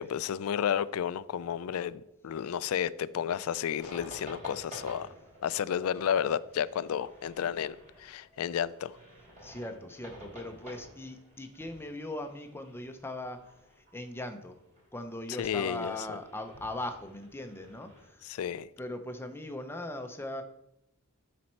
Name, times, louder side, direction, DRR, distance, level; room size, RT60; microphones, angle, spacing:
voice 1, 0.0-5.1 5.4-9.0 15.4-15.9 18.3-18.7, left 8 dB, 75° left, 0.3 m, -32 dB
sound 1, 3.8-18.1, equal, 35° right, 3.3 m, -52 dB
voice 2, 9.4-14.6 14.9-18.5 18.8-20.4, left 1 dB, 10° left, 0.6 m, -40 dB
12.0 x 4.2 x 4.4 m
head